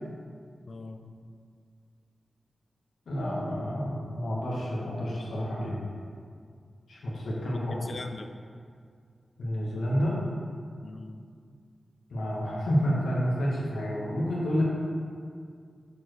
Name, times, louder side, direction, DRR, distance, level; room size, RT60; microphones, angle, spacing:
voice 1, 0.7-1.2 7.5-8.4 10.8-11.3, left 3 dB, 60° left, 7 dB, 0.4 m, -41 dB
voice 2, 3.1-5.8 6.9-7.9 9.4-10.2 12.1-14.6, equal, 90° left, -5 dB, 1.2 m, -29 dB
6.9 x 4.5 x 3.1 m, 2.2 s
cardioid pair, 45°, 0 cm